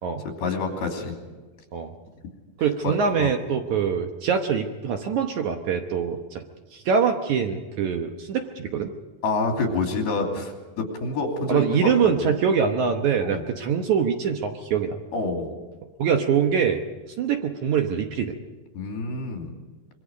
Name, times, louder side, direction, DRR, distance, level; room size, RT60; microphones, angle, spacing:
voice 1, 0.2-1.1 2.8-3.3 9.2-12.3 13.2-13.4 15.1-15.5 18.7-19.5, left 3 dB, 75° left, 2 dB, 4.7 m, -28 dB
voice 2, 2.6-6.4 6.7-8.9 11.5-15.0 16.0-16.8 17.2-18.4, right 7 dB, 65° right, 5 dB, 2.0 m, -24 dB
26.0 x 23.0 x 5.2 m, 1.3 s
omnidirectional pair, 4.5 m